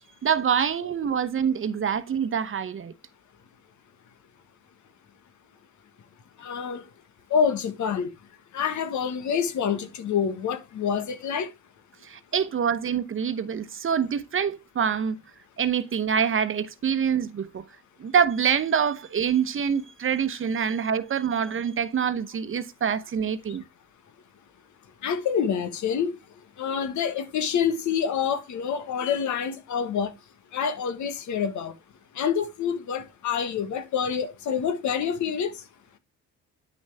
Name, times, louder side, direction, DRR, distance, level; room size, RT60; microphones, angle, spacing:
voice 1, 0.2-2.9 12.0-15.2 15.6-17.6 18.0-23.6, right 7 dB, 45° right, 0.9 m, -25 dB
voice 2, 6.4-6.8 7.3-8.1 8.5-11.5 25.0-26.2 26.6-30.1 30.5-31.7 32.1-35.6, left 7 dB, 70° left, 1.5 m, -27 dB
9.6 x 6.3 x 3.4 m
cardioid pair, 90°, 30 cm